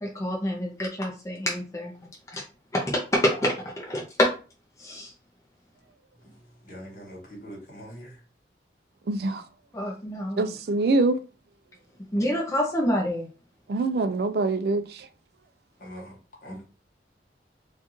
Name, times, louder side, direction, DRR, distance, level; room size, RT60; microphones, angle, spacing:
voice 1, 0.0-1.9 2.3-2.4 2.7-4.3 4.8-5.1 9.7-10.5 12.1-13.3, equal, 20° left, 0.6 m, -27 dB
voice 2, 6.6-8.2 15.8-16.2 16.4-16.7, equal, 50° left, 1.7 m, -42 dB
voice 3, 9.1-9.4 10.4-11.2 13.7-14.8, right 3 dB, 60° right, 0.4 m, -24 dB
4.3 x 2.4 x 3.0 m
head